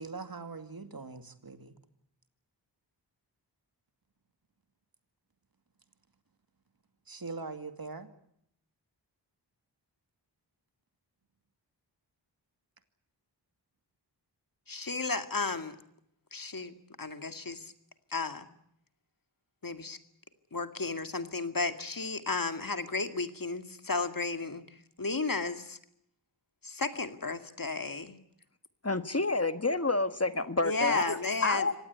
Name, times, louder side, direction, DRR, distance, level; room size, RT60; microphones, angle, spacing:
voice 1, 0.0-1.8 7.1-8.1, right 4 dB, 55° right, 8 dB, 2.4 m, -42 dB
voice 2, 14.7-15.8 16.3-17.7 18.1-18.5 19.6-20.0 20.5-25.8 26.6-28.2 30.6-31.7, left 3 dB, 50° left, 8 dB, 2.2 m, -33 dB
voice 3, 28.8-31.7, left 3 dB, 35° left, 10 dB, 1.6 m, -29 dB
25.5 x 18.0 x 9.6 m, 0.73 s
wide cardioid pair, 60°, 43 cm